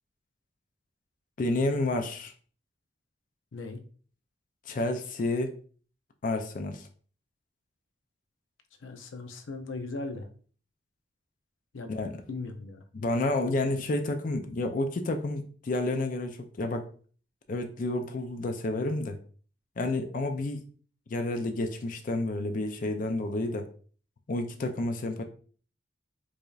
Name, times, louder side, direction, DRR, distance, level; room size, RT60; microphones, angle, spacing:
voice 1, 1.4-2.3 4.7-5.5 6.2-6.9 11.9-12.2 12.9-16.9 17.5-19.2 19.8-20.6 21.1-23.7 24.3-25.2, left 2 dB, 45° left, 6 dB, 0.4 m, -30 dB
voice 2, 3.5-3.8 8.8-10.3 11.7-12.0 12.3-12.8, left 3 dB, 85° left, 7 dB, 0.6 m, -38 dB
4.7 x 2.6 x 2.4 m, 0.43 s
head